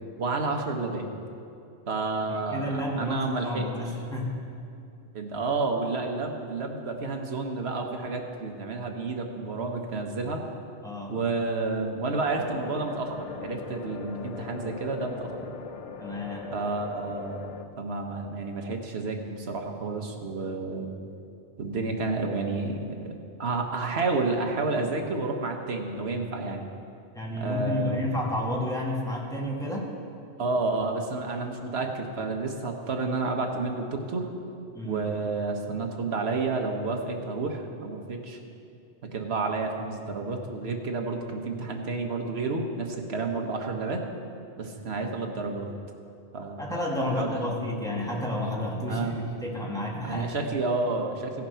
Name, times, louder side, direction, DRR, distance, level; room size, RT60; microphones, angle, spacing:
voice 1, 0.2-1.1 1.9-3.7 5.1-10.4 11.1-15.5 16.5-17.5 17.8-20.9 21.6-26.7 27.4-28.1 30.4-34.3 34.8-38.4 39.1-44.0 44.6-45.7 46.3-46.6 47.1-47.6 48.9-49.2 50.0-51.5, right 3 dB, 65° right, 3 dB, 1.3 m, -30 dB
voice 2, 2.3-4.3 10.8-11.1 16.0-16.5 27.1-29.9 34.7-35.0 46.6-50.3, left 1 dB, 5° left, -3 dB, 1.7 m, -31 dB
sound 1, 12.1-17.7, left 5 dB, 65° left, 0.3 m, -40 dB
16.0 x 6.7 x 5.6 m, 2.6 s
omnidirectional pair, 1.2 m